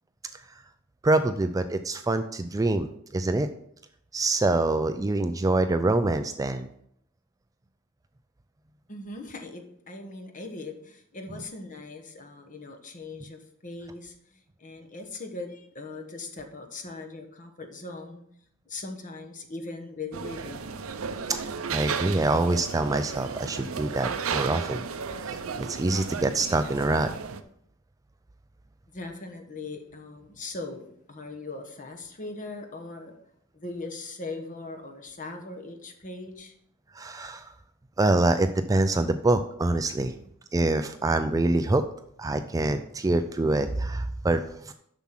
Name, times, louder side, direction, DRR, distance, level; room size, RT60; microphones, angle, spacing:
voice 1, 1.0-3.5 4.1-6.7 21.3-21.4 21.7-24.8 25.3-25.4 25.7-27.1 37.0-37.5 38.0-40.2 40.5-41.8 42.2-44.7, right 2 dB, 15° right, 9 dB, 0.4 m, -25 dB
voice 2, 8.9-14.1 14.6-18.2 18.7-20.7 28.9-33.2 33.5-36.5, left 3 dB, 40° left, 5 dB, 1.2 m, -40 dB
sound 1, 20.1-27.4, right 6 dB, 75° right, 0.6 m, -34 dB
7.1 x 6.2 x 5.8 m, 0.70 s
head